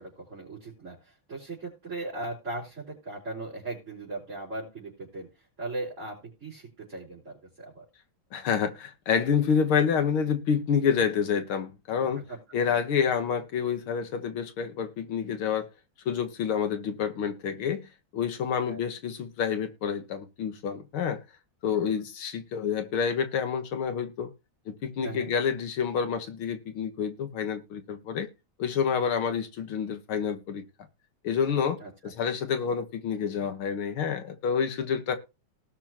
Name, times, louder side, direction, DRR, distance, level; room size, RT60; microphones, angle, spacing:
voice 1, 0.0-5.3 5.6-7.8 12.2-12.4 12.7-12.8 18.6-18.8 25.0-25.3 31.8-31.9, right 2 dB, 35° right, 4.9 m, -38 dB
voice 2, 8.3-12.2 12.5-15.7 16.1-21.2 21.6-24.3 24.7-28.3 28.6-30.6 31.2-35.2, left 7 dB, 90° left, 2.3 m, -28 dB
18.5 x 6.3 x 3.0 m
omnidirectional pair, 2.2 m